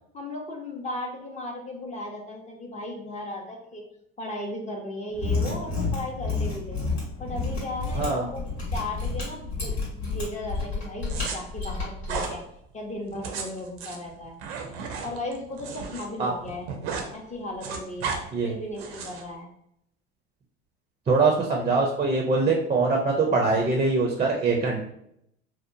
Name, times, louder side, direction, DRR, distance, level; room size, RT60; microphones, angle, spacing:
voice 1, 0.1-3.8 4.2-6.8 7.2-12.4 12.7-14.4 15.0-16.7 17.1-19.5, left 1 dB, 25° left, 1 dB, 0.6 m, -36 dB
Mechanisms, 5.1-12.3, left 3 dB, 85° left, 1.2 m, -30 dB
sound 1, 11.1-11.4 12.0-12.3 13.1-16.1 16.4-17.1 17.4-18.2 18.8-19.2, right 5 dB, 75° right, 0.6 m, -34 dB
voice 2, 21.1-24.8, right 3 dB, 20° right, 0 dB, 0.5 m, -23 dB
2.8 x 2.1 x 2.6 m, 0.74 s
hypercardioid pair, 80°, 31 cm